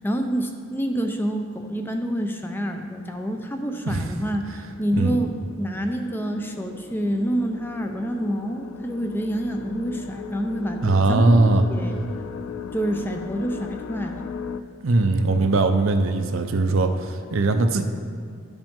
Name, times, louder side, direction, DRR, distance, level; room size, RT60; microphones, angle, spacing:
voice 1, 0.0-12.0 12.7-14.2, right 1 dB, 10° left, 4 dB, 0.5 m, -27 dB
sound 1, 0.9-1.4 2.3-2.4 2.8-14.6, left 6 dB, 85° left, 0.4 m, -38 dB
voice 2, 10.8-11.7 14.8-17.8, right 2 dB, 70° right, 7 dB, 0.6 m, -20 dB
12.5 x 5.1 x 3.7 m, 2.3 s
head